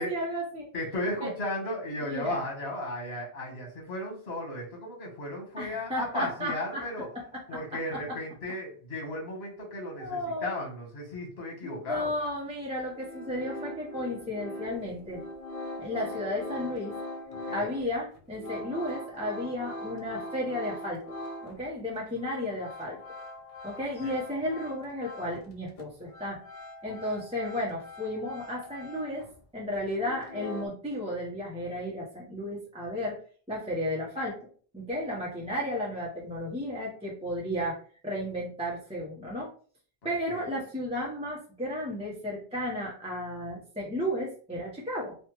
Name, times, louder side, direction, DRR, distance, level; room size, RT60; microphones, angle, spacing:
voice 1, 0.0-0.7 1.2-1.3 2.0-2.4 5.6-6.9 7.3-7.4 7.7-8.2 10.0-10.5 11.6-15.2 15.8-17.0 17.5-21.0 21.4-23.0 23.6-26.4 26.8-29.2 29.5-33.2 33.5-34.4 34.7-39.5 40.0-45.2, left 1 dB, 5° right, -5 dB, 0.7 m, -33 dB
voice 2, 0.7-7.1 7.5-12.1 17.5-17.7 24.0-24.1 26.9-27.0 40.0-40.4, left 1 dB, 80° left, 1 dB, 1.4 m, -35 dB
sound 1, 12.2-12.3 12.7-21.7 22.0-25.5 25.8-29.4 29.7-30.7, left 1 dB, 45° left, 0.5 m, -42 dB
3.4 x 2.3 x 2.9 m, 0.42 s
omnidirectional pair, 1.0 m